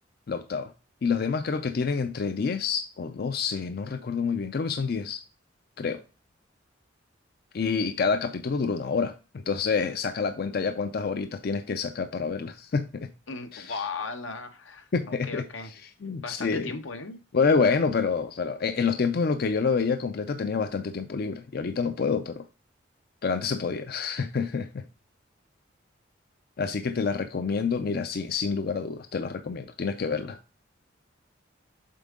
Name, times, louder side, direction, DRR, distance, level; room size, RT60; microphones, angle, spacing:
voice 1, 0.3-0.7 1.0-5.2 5.8-6.0 7.5-13.1 13.5-13.8 14.9-16.7 17.3-22.5 23.2-24.8 26.6-30.4, left 5 dB, 50° left, 0.4 m, -28 dB
voice 2, 13.3-15.7 16.2-17.2, left 4 dB, 85° left, 1.0 m, -36 dB
7.5 x 4.5 x 3.6 m
head